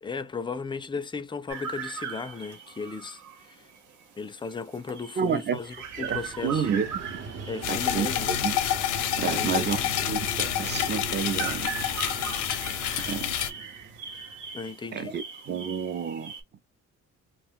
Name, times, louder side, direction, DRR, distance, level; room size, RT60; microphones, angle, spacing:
voice 1, 0.0-3.7 4.2-6.7 7.5-8.3 9.2-9.8 14.5-15.2, left 5 dB, 15° left, 0.3 m, -36 dB
sound 1, 1.5-16.4, right 7 dB, 85° right, 1.0 m, -40 dB
voice 2, 5.2-5.6 6.0-6.9 7.7-8.6 9.2-11.7 13.1-13.4 14.9-16.3, right 7 dB, 35° right, 0.5 m, -30 dB
Vehicle, 5.6-14.6, right 3 dB, 60° right, 1.0 m, -40 dB
sound 2, 7.6-13.5, left 11 dB, 90° left, 0.6 m, -28 dB
2.5 x 2.2 x 3.5 m
cardioid pair, 90°, 30 cm